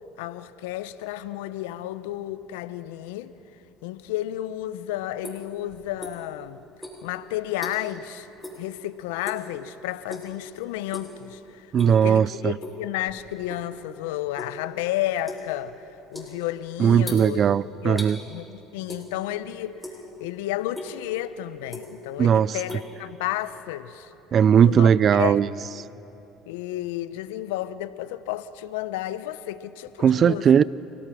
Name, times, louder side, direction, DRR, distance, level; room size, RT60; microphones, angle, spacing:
voice 1, 0.2-3.3 3.8-6.6 7.0-8.3 8.6-17.4 17.8-19.8 20.2-24.1 24.6-25.4 26.5-30.6, left 14 dB, 85° left, 0.7 m, -32 dB
sound 1, 4.5-6.4 6.7-8.0 8.4-8.7 9.0-9.5 10.0-10.4 10.8-11.2 11.6-12.1 12.6-13.7 14.0-18.1 18.9-19.4 19.7-20.3 20.7-20.9 21.4-22.2 22.4-23.6, left 1 dB, ahead, 7.3 m, -39 dB
voice 2, 11.7-12.6 16.8-18.2 22.2-22.6 24.3-25.5 30.0-30.6, right 8 dB, 45° right, 0.4 m, -18 dB
29.5 x 18.5 x 6.2 m
supercardioid pair, 80°, 0 cm